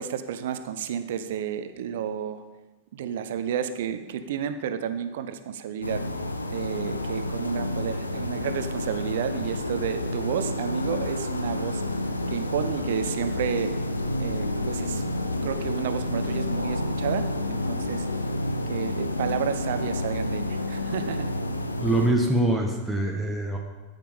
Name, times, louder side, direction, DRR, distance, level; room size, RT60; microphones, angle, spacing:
voice 1, 0.0-2.4 2.9-6.1 6.5-11.8 12.3-13.7 14.2-15.0 15.4-18.1 18.7-21.3, right 8 dB, 55° right, 10 dB, 0.9 m, -31 dB
sound 1, 5.8-22.1, left 1 dB, 80° left, 0.9 m, -29 dB
voice 2, 21.8-23.6, right 1 dB, ahead, 0 dB, 1.5 m, -24 dB
14.0 x 9.4 x 5.2 m, 1.2 s
figure-of-eight pair, 90°, 0 cm